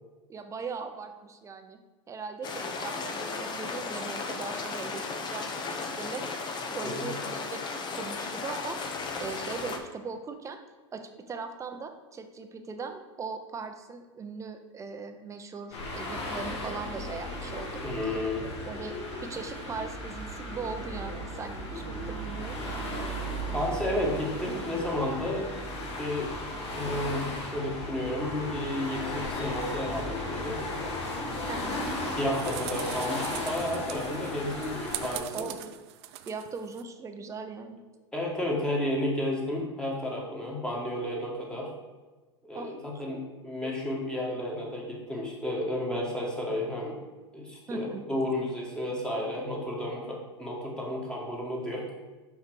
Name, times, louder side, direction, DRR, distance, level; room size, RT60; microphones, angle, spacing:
voice 1, 0.3-1.8 2.1-6.2 6.7-7.6 7.9-10.6 10.9-18.2 18.5-18.9 19.2-22.9 31.5-31.8 35.3-35.7 36.3-37.8 42.5-43.0 47.7-48.1, right 4 dB, 20° right, 7 dB, 0.7 m, -39 dB
sound 1, 2.4-9.8, left 4 dB, 30° left, 0.8 m, -35 dB
sound 2, 15.7-35.2, left 1 dB, 70° left, 1.7 m, -35 dB
voice 2, 17.8-18.5 23.5-25.5 26.0-26.3 26.7-30.6 32.2-35.4 38.1-41.7 42.5-47.0 47.3-51.9, left 1 dB, 5° left, -3 dB, 1.7 m, -32 dB
sound 3, 31.8-36.8, right 13 dB, 65° right, 0.5 m, -41 dB
5.7 x 4.9 x 4.7 m, 1.3 s
hypercardioid pair, 110°, 15 cm